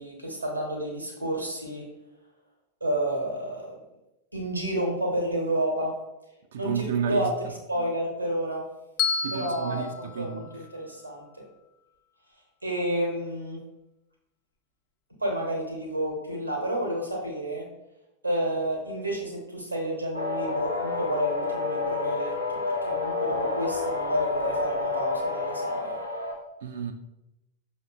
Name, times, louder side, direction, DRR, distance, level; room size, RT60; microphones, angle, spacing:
voice 1, 0.0-1.8 2.8-3.8 4.3-5.9 6.6-7.3 7.7-8.6 9.3-11.4 12.6-13.6 15.2-17.6 18.2-26.0, right 1 dB, 85° right, 0.9 m, -30 dB
voice 2, 6.5-7.3 9.2-10.6 26.6-26.9, right 7 dB, 60° right, 0.3 m, -31 dB
Bell, 9.0-11.2, left 6 dB, 35° left, 0.4 m, -32 dB
sound 1, 20.1-26.3, left 3 dB, 85° left, 0.6 m, -29 dB
5.5 x 2.5 x 2.4 m
figure-of-eight pair, 90°, 0 cm